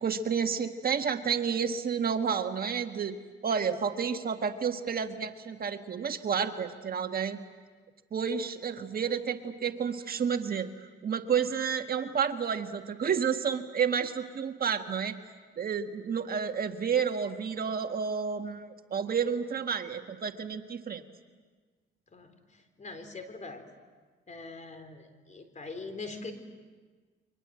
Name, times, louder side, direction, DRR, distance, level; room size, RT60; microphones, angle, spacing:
voice 1, 0.0-3.1 3.4-7.4 8.1-15.1 15.6-21.0, right 6 dB, 50° right, 6 dB, 1.6 m, -30 dB
voice 2, 22.1-23.6 24.3-26.3, left 3 dB, 35° left, 8 dB, 3.9 m, -42 dB
29.5 x 24.0 x 7.7 m, 1.4 s
cardioid pair, 90°, 20 cm